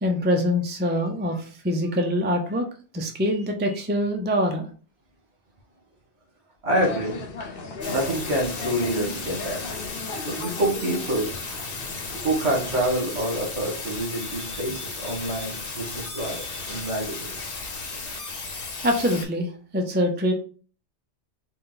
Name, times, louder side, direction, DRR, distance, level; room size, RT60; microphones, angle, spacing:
voice 1, 0.0-2.7 2.9-4.7 14.7-14.8 18.8-20.3, equal, 15° right, 4 dB, 0.3 m, -24 dB
voice 2, 6.6-7.2 7.9-9.6 10.3-11.4 12.1-17.4, right 1 dB, 70° right, -2 dB, 1.7 m, -27 dB
sound 1, 6.7-12.8, left 3 dB, 60° left, 0.8 m, -36 dB
sound 2, 7.8-19.3, left 4 dB, 85° left, 1.2 m, -35 dB
4.0 x 2.3 x 3.8 m, 0.39 s
omnidirectional pair, 1.2 m